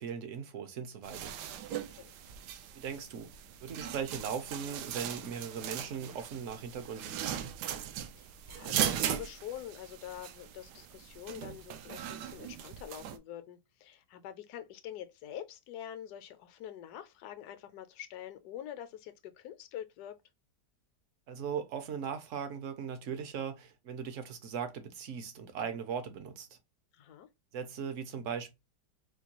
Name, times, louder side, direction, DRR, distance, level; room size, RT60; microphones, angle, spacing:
voice 1, 0.0-1.3 2.7-3.3 3.6-7.6 21.3-26.6 27.5-28.5, right 7 dB, 60° right, 0.9 m, -39 dB
sound 1, 1.0-13.2, right 10 dB, 80° right, 1.2 m, -39 dB
voice 2, 1.7-2.1 8.2-20.2 26.9-27.3, left 10 dB, 75° left, 1.1 m, -46 dB
4.4 x 2.3 x 2.9 m
omnidirectional pair, 1.8 m